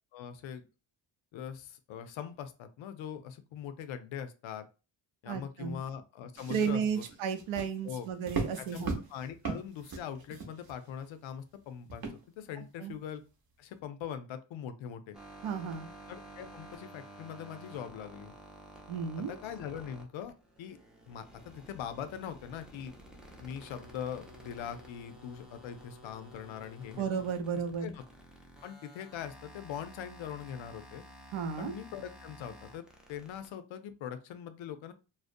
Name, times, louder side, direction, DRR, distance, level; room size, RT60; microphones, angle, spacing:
voice 1, 0.1-0.6 1.3-4.7 5.2-7.0 7.8-8.1 8.6-12.1 12.4-13.2 13.6-15.2 16.1-18.3 19.2-20.8 21.1-22.9 23.4-27.1 27.5-28.0 28.6-31.0 31.6-34.9, left 8 dB, 75° left, 10 dB, 0.5 m, -42 dB
voice 2, 5.3-5.8 6.5-9.0 12.8-12.9 15.4-15.9 18.9-19.4 27.0-27.9 31.3-31.7, right 6 dB, 90° right, 7 dB, 0.6 m, -33 dB
sound 1, 6.3-11.1 11.9-12.5 13.1-13.2, right 4 dB, 50° right, 0.7 m, -39 dB
sound 2, 15.1-33.5, right 1 dB, ahead, 0.4 m, -52 dB
2.5 x 2.0 x 2.5 m, 0.31 s
cardioid pair, 115°, 47 cm